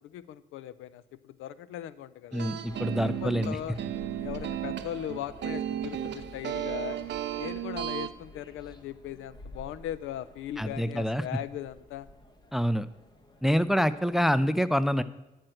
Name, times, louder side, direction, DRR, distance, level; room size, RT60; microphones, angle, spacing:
voice 1, 0.0-2.6 3.0-3.8 4.2-7.0 7.4-12.1, left 11 dB, 85° left, 17 dB, 0.5 m, -39 dB
voice 2, 2.3-3.6 10.6-11.3 12.5-12.9 13.4-15.0, equal, ahead, 14 dB, 0.4 m, -26 dB
sound 1, 2.3-8.1, right 11 dB, 65° right, 0.7 m, -34 dB
sound 2, 2.6-14.2, left 1 dB, 20° left, 1.2 m, -50 dB
10.5 x 4.5 x 7.6 m, 1.0 s
cardioid pair, 90°, 20 cm